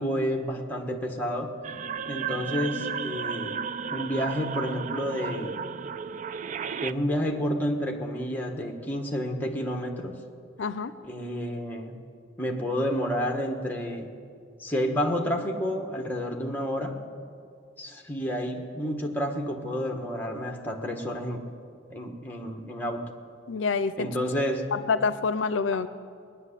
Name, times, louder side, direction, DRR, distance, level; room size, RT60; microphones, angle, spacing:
voice 1, 0.0-1.5 2.0-5.6 6.8-10.2 11.0-12.0 12.4-14.1 14.6-17.0 17.8-21.4 21.9-23.1 24.0-24.7 25.7-25.8, equal, 10° left, 2 dB, 1.3 m, -30 dB
sound 1, 1.6-6.9, right 6 dB, 40° right, 0.3 m, -33 dB
voice 2, 10.6-10.9 23.5-24.1 24.7-25.9, left 5 dB, 80° left, 13 dB, 0.5 m, -27 dB
20.5 x 6.8 x 9.9 m, 2.3 s
head